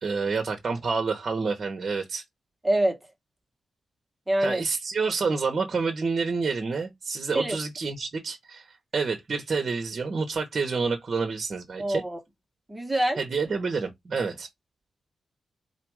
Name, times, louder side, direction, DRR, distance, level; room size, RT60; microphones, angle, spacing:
voice 1, 0.0-2.2 4.4-12.0 13.2-14.5, right 4 dB, 45° right, 0.9 m, -28 dB
voice 2, 2.6-3.0 4.3-4.6 7.3-7.6 11.8-12.2 12.7-13.2, right 1 dB, 10° right, 1.1 m, -25 dB
4.2 x 2.5 x 4.6 m
wide cardioid pair, 130°, 0 cm